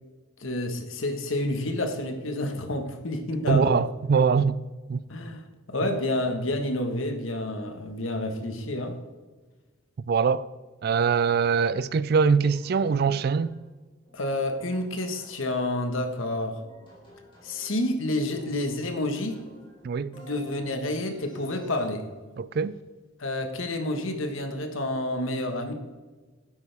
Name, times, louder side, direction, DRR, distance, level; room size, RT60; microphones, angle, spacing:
voice 1, 0.4-3.8 5.1-9.0 14.1-16.6 17.4-19.4 20.1-22.0 23.2-25.7, left 1 dB, 80° left, 1.4 m, -29 dB
voice 2, 3.5-4.6 4.9-5.0 10.1-10.5 10.8-13.5 19.8-20.2 22.4-22.8, right 5 dB, 50° right, 0.3 m, -23 dB
sound 1, 12.4-13.7 14.1-15.8 16.2-17.9 18.2-19.9 20.1-21.9, right 2 dB, 25° left, 3.6 m, -51 dB
12.5 x 9.7 x 3.5 m
head